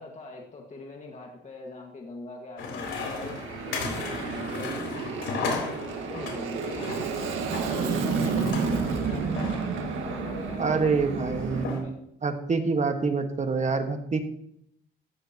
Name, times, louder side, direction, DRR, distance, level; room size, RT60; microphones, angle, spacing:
voice 1, 0.0-4.7 5.4-6.9 7.6-11.9, left 3 dB, 35° left, 0 dB, 1.8 m, -42 dB
sound 1, 2.6-11.8, left 4 dB, 85° left, 3.9 m, -36 dB
Aircraft, 2.8-11.6, right 5 dB, 85° right, 1.7 m, -31 dB
voice 2, 10.6-14.2, right 4 dB, 35° right, 6 dB, 1.6 m, -27 dB
14.5 x 13.5 x 2.9 m, 0.76 s
cardioid pair, 90°, 20 cm